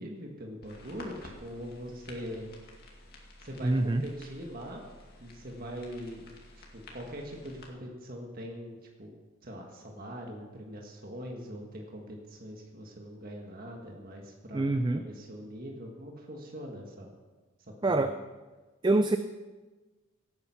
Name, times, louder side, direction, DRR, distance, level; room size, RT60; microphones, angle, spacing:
voice 1, 0.0-2.5 3.4-4.8 5.2-6.3 6.7-9.1 9.4-17.1 17.8-18.1, equal, 40° right, 1 dB, 1.6 m, -42 dB
sound 1, 0.6-7.7, left 1 dB, 45° left, 2.3 m, -51 dB
voice 2, 3.6-4.0 14.5-15.0 17.8-18.1 18.8-19.2, right 2 dB, 20° right, 9 dB, 0.4 m, -25 dB
16.5 x 9.2 x 5.7 m, 1.3 s
head